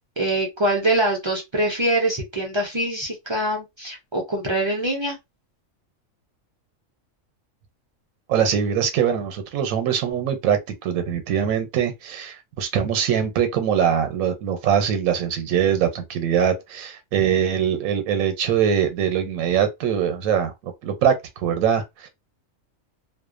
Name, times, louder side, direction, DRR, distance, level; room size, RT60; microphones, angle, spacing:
voice 1, 0.2-5.2, right 1 dB, 50° right, 0.3 m, -24 dB
voice 2, 8.3-22.1, right 8 dB, 90° right, 1.0 m, -22 dB
2.5 x 2.1 x 2.4 m
omnidirectional pair, 1.4 m